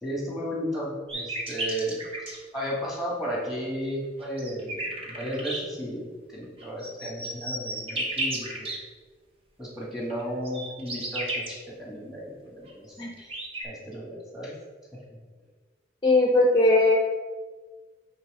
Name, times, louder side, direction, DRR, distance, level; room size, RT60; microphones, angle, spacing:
voice 1, 0.0-2.0 2.5-8.7 9.6-13.3 13.6-14.5 14.9-15.2, equal, ahead, -5 dB, 1.7 m, -34 dB
sound 1, 1.1-2.4 4.2-5.6 6.6-8.8 10.2-11.5 12.7-12.8 13.0-13.6, right 1 dB, 30° right, 1.1 m, -33 dB
voice 2, 16.0-17.0, left 2 dB, 25° left, 0 dB, 0.6 m, -19 dB
7.7 x 3.4 x 4.9 m, 1.4 s
head